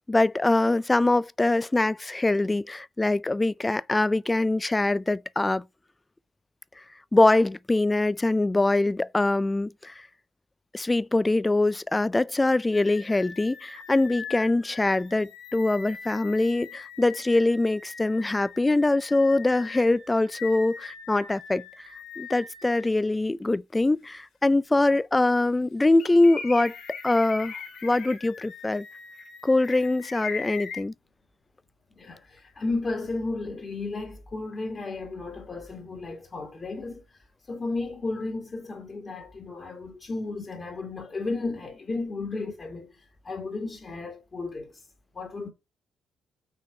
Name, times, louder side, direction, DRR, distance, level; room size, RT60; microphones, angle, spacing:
voice 1, 0.1-5.6 7.1-9.9 10.7-21.6 22.2-26.8 27.0-28.9 29.4-30.9, left 2 dB, 15° left, 0.4 m, -23 dB
sound 1, 12.7-22.9 23.4-23.5 26.0-30.8, left 5 dB, 65° left, 2.8 m, -41 dB
voice 2, 32.0-44.8 45.1-45.5, left 3 dB, 35° left, 2.5 m, -34 dB
6.2 x 4.2 x 5.4 m
cardioid pair, 90°, 0 cm